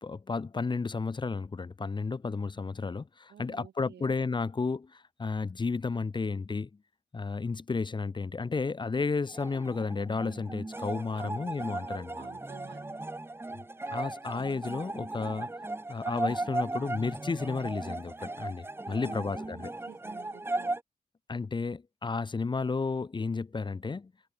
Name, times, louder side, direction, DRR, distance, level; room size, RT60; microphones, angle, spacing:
voice 1, 0.0-6.7 7.1-12.3 13.9-15.5 15.9-19.7 21.3-24.1, left 4 dB, 25° left, 0.9 m, -32 dB
voice 2, 3.3-4.1 11.1-11.4 12.2-13.2 18.9-20.8, right 9 dB, 80° right, 1.4 m, -52 dB
sound 1, 9.3-20.8, right 2 dB, 15° right, 1.3 m, -37 dB
wide cardioid pair, 140°, 18 cm